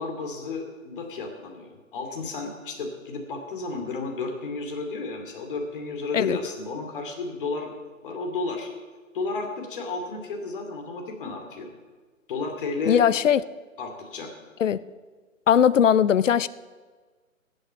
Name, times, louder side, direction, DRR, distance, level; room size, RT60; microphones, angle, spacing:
voice 1, 0.0-7.7 8.0-8.7 9.1-11.7 12.3-13.0 13.8-14.3, left 3 dB, 40° left, 2.6 m, -32 dB
voice 2, 12.9-13.4 14.6-14.8 15.5-16.5, left 8 dB, 65° left, 0.6 m, -19 dB
15.0 x 8.9 x 6.9 m
figure-of-eight pair, 140°, 41 cm